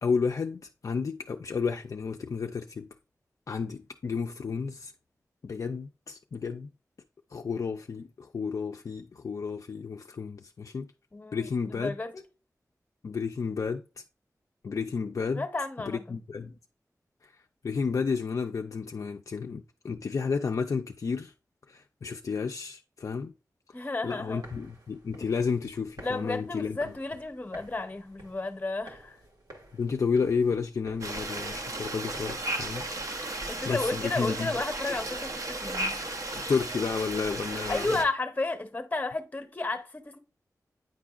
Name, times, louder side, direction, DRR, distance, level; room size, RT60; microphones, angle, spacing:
voice 1, 0.0-2.9 3.5-4.9 5.4-6.7 7.3-10.9 11.3-11.9 13.0-13.8 14.6-15.4 15.9-16.5 17.6-21.3 21.7-23.3 24.0-26.8 29.7-32.8 33.7-34.5 36.3-37.9, left 5 dB, 60° left, 0.3 m, -31 dB
voice 2, 11.1-12.2 15.3-16.2 23.7-24.4 26.0-29.2 33.2-36.5 37.5-40.2, left 2 dB, 25° left, 0.8 m, -33 dB
sound 1, 24.2-33.0, right 1 dB, 80° right, 1.5 m, -52 dB
sound 2, 31.0-38.0, right 2 dB, 60° right, 0.8 m, -35 dB
9.2 x 4.7 x 2.4 m
wide cardioid pair, 95°, 6 cm